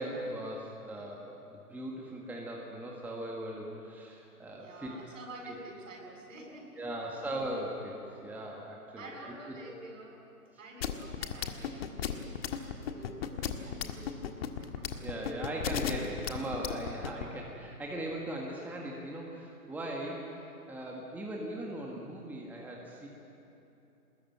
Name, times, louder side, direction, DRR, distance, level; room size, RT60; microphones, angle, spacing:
voice 1, 0.0-4.9 5.4-5.5 6.8-9.1 15.0-23.1, right 1 dB, 5° right, -2 dB, 1.7 m, -39 dB
voice 2, 4.5-6.8 9.0-10.2 10.6-14.3 14.6-15.5 17.0-17.1, right 2 dB, 55° right, 1 dB, 7.5 m, -49 dB
sound 1, 10.8-17.2, left 10 dB, 40° left, 1.7 m, -33 dB
24.5 x 21.0 x 9.3 m, 3.0 s
figure-of-eight pair, 130°, 45 cm